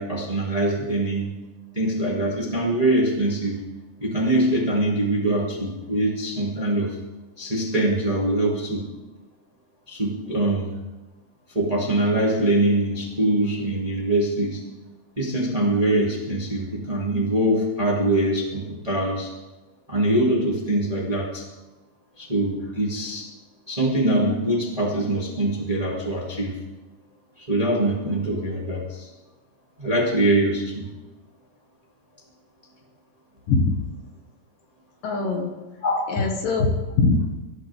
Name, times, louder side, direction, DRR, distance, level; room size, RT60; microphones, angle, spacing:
voice 1, 0.0-1.3 1.7-3.6 4.0-7.0 7.4-8.9 9.9-10.8 11.5-14.6 15.2-19.3 19.9-21.4 22.2-23.3 23.7-26.5 27.4-29.1 29.8-30.9 35.8-36.0, right 1 dB, 15° right, -3 dB, 1.7 m, -23 dB
voice 2, 35.0-35.5 36.1-37.4, left 3 dB, 65° left, 3 dB, 3.0 m, -22 dB
25.5 x 14.5 x 3.5 m, 1.2 s
omnidirectional pair, 4.4 m